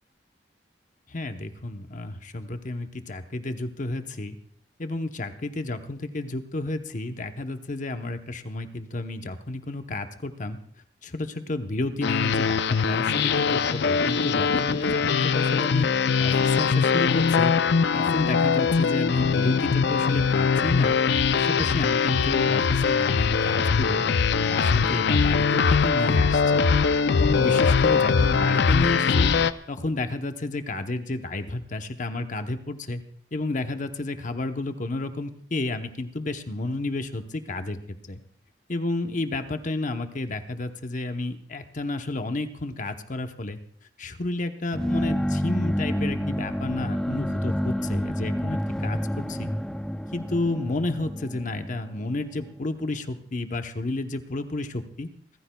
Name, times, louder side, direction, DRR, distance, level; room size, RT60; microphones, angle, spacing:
voice 1, 1.1-4.4 4.8-10.6 11.0-15.9 16.2-17.5 17.9-21.0 21.3-24.1 24.4-26.6 27.1-29.3 29.7-33.0 33.3-38.2 38.7-43.6 44.0-49.5 50.1-55.1, left 2 dB, 45° left, 7 dB, 0.9 m, -31 dB
sound 1, 12.0-29.5, left 5 dB, 65° left, 0.5 m, -22 dB
sound 2, 44.7-52.5, equal, 5° left, 0.4 m, -29 dB
28.0 x 14.5 x 2.3 m, 0.62 s
head